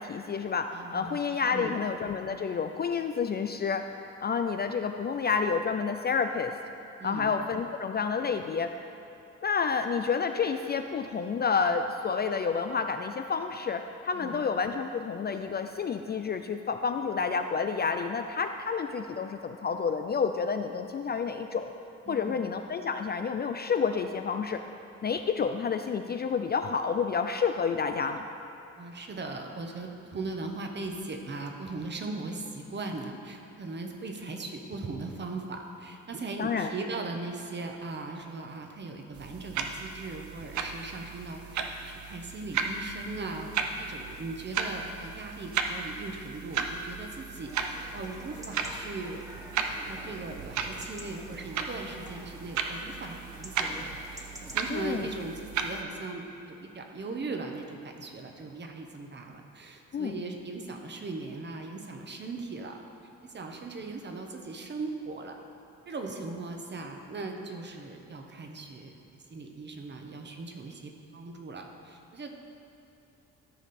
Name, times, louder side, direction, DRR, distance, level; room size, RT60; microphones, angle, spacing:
voice 1, 0.0-3.8 4.2-6.5 7.0-8.7 9.4-21.7 22.1-24.6 25.0-28.3 36.4-36.7 54.7-55.1 59.9-60.1, left 5 dB, 35° left, 7 dB, 0.4 m, -29 dB
voice 2, 0.7-1.2 1.5-1.9 7.0-7.3 14.1-14.4 22.1-22.4 28.8-49.2 49.5-62.8 63.2-65.4 65.9-72.4, right 3 dB, 35° right, 3 dB, 1.1 m, -39 dB
sound 1, 39.1-55.8, right 6 dB, 70° right, 0.7 m, -36 dB
Chatter / Livestock farm animals working animals / Chirp tweet, 47.4-54.6, equal, 10° right, 1.1 m, -48 dB
13.0 x 5.1 x 4.3 m, 3.0 s
cardioid pair, 90°, 30 cm